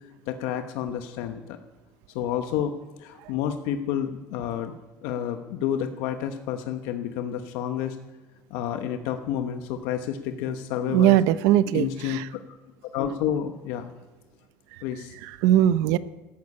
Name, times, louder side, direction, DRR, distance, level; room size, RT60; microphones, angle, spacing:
voice 1, 0.3-1.6 2.1-2.7 3.0-4.8 5.0-8.0 8.5-11.2 11.7-12.2 12.9-13.9 14.8-15.1, left 10 dB, 85° left, 7 dB, 1.0 m, -29 dB
voice 2, 10.9-12.3 14.7-14.8 15.2-16.0, right 12 dB, 80° right, 15 dB, 0.7 m, -20 dB
13.5 x 11.0 x 8.6 m, 1.2 s
cardioid pair, 160°, 6 cm